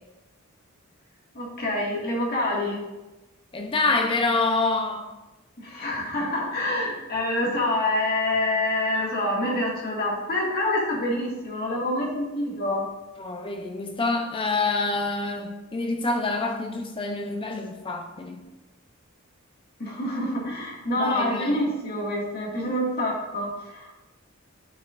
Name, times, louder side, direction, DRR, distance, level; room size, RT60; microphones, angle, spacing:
voice 1, 1.3-2.9 5.6-12.8 19.8-23.9, left 1 dB, 50° left, -3 dB, 2.0 m, -26 dB
voice 2, 3.5-5.1 13.2-18.4 21.0-21.6, left 3 dB, 25° left, 4 dB, 0.6 m, -27 dB
10.0 x 5.6 x 2.5 m, 1.1 s
head